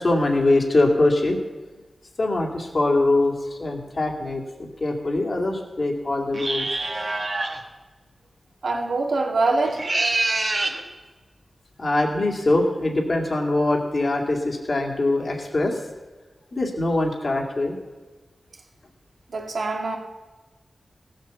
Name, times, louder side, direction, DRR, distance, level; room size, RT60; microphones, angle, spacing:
voice 1, 0.0-1.4 2.2-6.7 11.8-15.8 16.5-17.8, left 2 dB, 50° left, 0 dB, 2.3 m, -23 dB
sound 1, 6.3-7.6 9.6-10.8, right 2 dB, 45° right, 1.8 m, -25 dB
voice 2, 8.6-9.8 19.3-20.0, right 3 dB, 80° right, 1 dB, 2.0 m, -24 dB
16.5 x 7.8 x 6.9 m, 1.2 s
wide cardioid pair, 90°, 0 cm